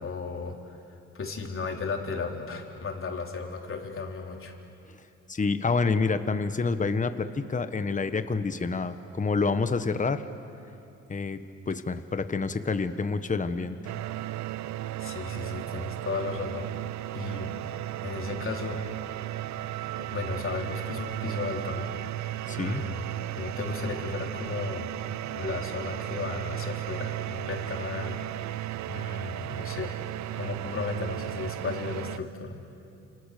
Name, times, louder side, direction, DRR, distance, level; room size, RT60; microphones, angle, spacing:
voice 1, 0.0-4.6 15.0-16.7 17.1-17.5 18.0-18.8 20.0-21.9 22.5-23.1 23.4-24.9 25.3-28.2 28.9-30.1 30.3-32.6, left 4 dB, 45° left, 1 dB, 3.8 m, -35 dB
voice 2, 5.3-10.2 11.1-11.4 11.7-13.8 22.5-22.8, left 4 dB, 25° left, 10 dB, 1.3 m, -28 dB
sound 1, 13.8-32.2, right 14 dB, 70° right, 0.6 m, -35 dB
29.5 x 28.0 x 6.8 m, 2.7 s
cardioid pair, 90°, 30 cm